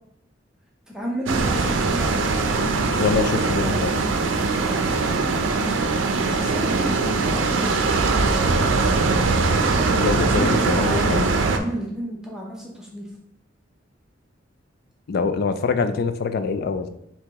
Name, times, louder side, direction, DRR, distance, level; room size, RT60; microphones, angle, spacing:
voice 1, 0.9-2.2 2.8-3.2 4.7-5.9 6.3-8.6 10.2-11.1 11.5-13.1, equal, 5° right, -2 dB, 0.6 m, -32 dB
sound 1, 1.3-11.6, right 3 dB, 85° right, 0.5 m, -21 dB
voice 2, 3.0-4.0 10.0-11.3 15.1-16.9, left 4 dB, 55° left, 9 dB, 0.3 m, -24 dB
4.6 x 2.9 x 3.5 m, 0.77 s
head